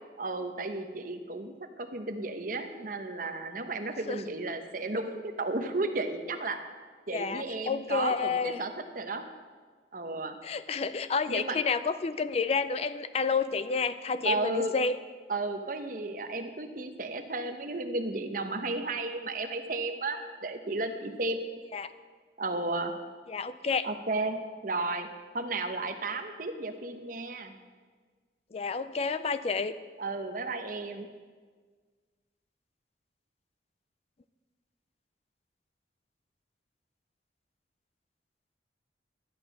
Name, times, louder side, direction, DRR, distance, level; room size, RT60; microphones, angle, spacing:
voice 1, 0.2-6.6 7.1-9.3 9.9-10.4 11.3-11.6 14.2-14.7 15.3-21.6 22.4-22.9 23.8-25.1 25.3-27.5 30.0-31.1, right 2 dB, 50° right, 7 dB, 0.9 m, -33 dB
voice 2, 7.1-8.6 10.4-15.0 21.7-21.9 23.3-23.9 28.5-29.7, left 5 dB, 35° left, 13 dB, 0.4 m, -30 dB
12.0 x 8.9 x 6.3 m, 1.5 s
head